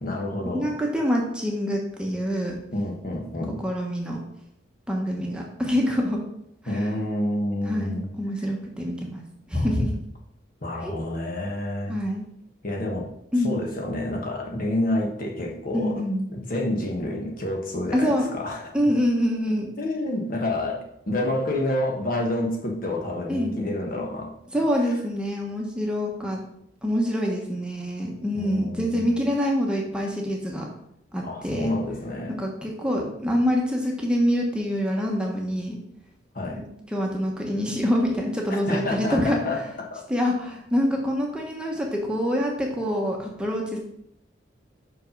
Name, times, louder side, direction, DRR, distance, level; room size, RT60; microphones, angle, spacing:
voice 1, 0.0-0.7 2.7-3.6 6.7-8.1 9.5-9.7 10.6-12.0 12.6-13.1 13.4-16.0 16.3-18.7 19.8-24.3 24.8-24.9 28.3-29.1 31.2-32.4 36.3-36.6 38.7-39.6 39.9-40.0, left 1 dB, 50° left, 0 dB, 1.3 m, -28 dB
voice 2, 0.5-2.6 3.6-4.2 4.9-6.2 6.6-6.9 7.6-9.2 9.5-9.9 10.8-10.9 11.9-12.3 13.3-13.6 15.7-16.3 17.9-18.3 18.7-19.7 23.3-23.5 24.5-26.4 26.8-30.7 31.1-31.7 32.4-35.8 36.5-36.6 36.9-39.4 40.1-43.8, equal, 5° right, -1 dB, 1.1 m, -25 dB
5.9 x 5.3 x 5.3 m, 0.75 s
head